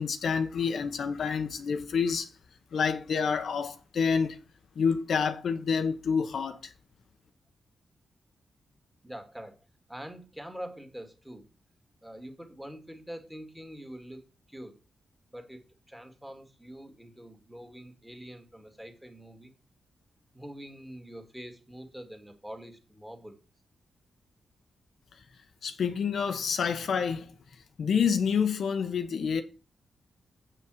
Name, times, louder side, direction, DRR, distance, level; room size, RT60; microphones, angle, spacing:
voice 1, 0.0-2.3 2.7-4.4 4.8-6.7 25.6-27.3 27.8-29.4, left 6 dB, 70° left, 1.1 m, -28 dB
voice 2, 9.0-11.5 12.0-14.2 14.5-14.8 15.3-19.5 20.3-23.4, equal, 5° right, 2.3 m, -45 dB
8.3 x 6.0 x 6.3 m
wide cardioid pair, 115°, 0 cm